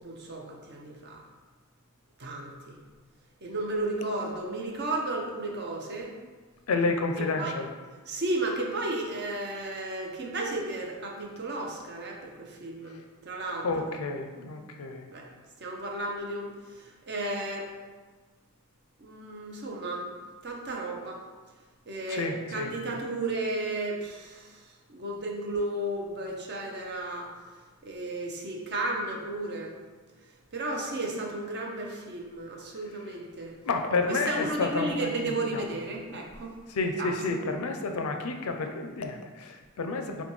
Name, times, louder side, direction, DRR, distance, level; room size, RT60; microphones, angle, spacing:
voice 1, 0.0-1.2 2.2-2.8 3.4-6.1 7.4-7.5 8.1-13.7 15.1-15.3 15.6-17.7 19.0-20.1 20.4-21.2 21.9-24.6 24.9-27.3 27.8-29.8 30.5-33.5 34.1-36.5 37.0-37.4, right 2 dB, 50° right, 0 dB, 0.7 m, -33 dB
voice 2, 6.7-7.7 13.6-15.1 22.1-22.7 32.9-33.1 33.6-35.7 36.7-40.2, left 3 dB, 90° left, 5 dB, 0.5 m, -30 dB
6.7 x 2.2 x 3.1 m, 1.4 s
head